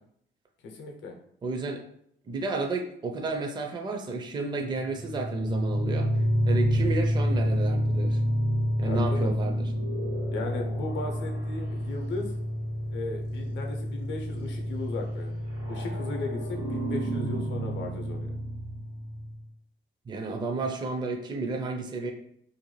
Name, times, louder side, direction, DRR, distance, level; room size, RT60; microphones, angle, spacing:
voice 1, 0.6-1.1 8.8-9.3 10.3-12.3 12.9-15.4 15.7-18.3, left 3 dB, 70° left, 2 dB, 0.6 m, -36 dB
voice 2, 1.4-1.8 2.3-6.1 6.5-8.2 8.8-9.7 20.1-22.1, right 3 dB, 20° right, 3 dB, 0.4 m, -32 dB
sound 1, 4.8-19.4, equal, 85° right, 1.1 m, -29 dB
2.6 x 2.2 x 3.0 m, 0.69 s
cardioid pair, 90°, 20 cm